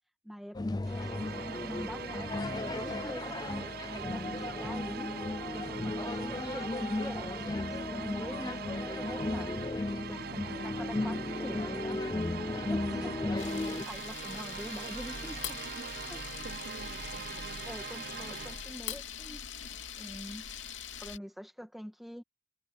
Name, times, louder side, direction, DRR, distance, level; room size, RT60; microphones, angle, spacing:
voice 1, 0.2-5.1 5.5-9.5 9.8-12.3 12.5-13.1 13.7-15.6 16.1-16.2 17.7-19.5 20.0-20.5 21.0-22.2, equal, ahead, 1.8 m, -45 dB
sound 1, 0.5-13.8, left 2 dB, 20° left, 0.4 m, -35 dB
sound 2, 0.8-18.8, right 8 dB, 50° right, 0.4 m, -43 dB
voice 2, 10.2-10.8 12.9-13.2 15.6-15.9 16.4-17.5, right 2 dB, 75° right, 4.1 m, -49 dB
Camera, 13.4-21.2, left 8 dB, 85° left, 2.7 m, -42 dB
head